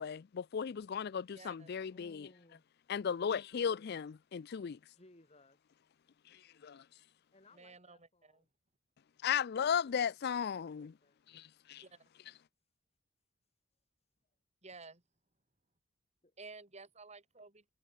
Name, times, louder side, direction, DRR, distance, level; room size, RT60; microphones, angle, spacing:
voice 1, 0.0-2.3 2.9-4.8 6.6-6.8 9.2-10.9 11.3-11.8, left 7 dB, 50° left, 0.4 m, -35 dB
voice 2, 1.3-1.7 7.6-8.4 11.8-12.0 14.6-15.0 16.4-17.7, right 3 dB, 35° right, 3.1 m, -53 dB
voice 3, 1.9-2.6 4.9-5.8 7.3-8.5 10.7-11.2 16.2-16.3, left 2 dB, 30° left, 3.3 m, -63 dB
head